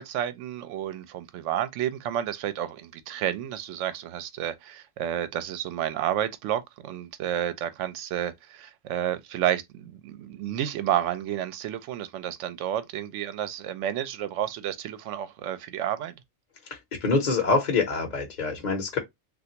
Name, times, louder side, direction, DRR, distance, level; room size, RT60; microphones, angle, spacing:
voice 1, 0.0-16.2, right 11 dB, 75° right, 0.9 m, -30 dB
voice 2, 16.7-19.0, left 4 dB, 40° left, 0.8 m, -25 dB
3.3 x 2.5 x 2.8 m
omnidirectional pair, 1.3 m